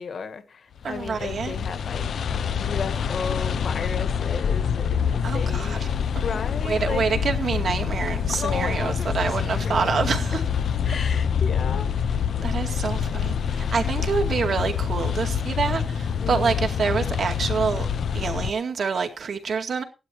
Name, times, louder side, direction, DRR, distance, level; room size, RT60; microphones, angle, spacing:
voice 1, 0.0-5.8 6.2-7.3 8.3-9.9 10.8-12.2 12.7-12.8 16.2-16.8, left 6 dB, 55° left, 1.4 m, -35 dB
sound 1, 0.8-18.5, left 7 dB, 75° left, 0.6 m, -26 dB
voice 2, 0.8-1.6 5.2-5.9 6.6-10.4 12.4-17.9 18.1-19.8, right 5 dB, 55° right, 2.2 m, -27 dB
17.5 x 12.0 x 3.0 m
wide cardioid pair, 180°, 0 cm